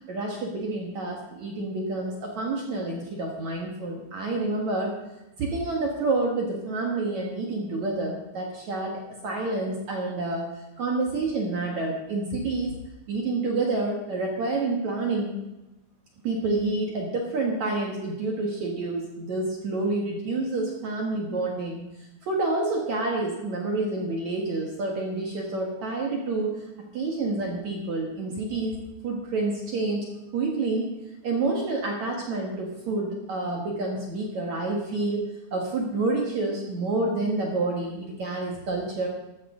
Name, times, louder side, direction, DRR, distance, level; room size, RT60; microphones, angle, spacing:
voice 1, 0.0-5.0 5.4-10.5 10.8-12.8 13.1-15.3 16.2-21.8 22.2-26.6 26.9-28.8 29.0-30.1 30.3-30.9 31.2-35.3 35.5-39.1, right 2 dB, 55° right, -1 dB, 2.3 m, -28 dB
14.0 x 13.5 x 3.8 m, 0.96 s
omnidirectional pair, 5.0 m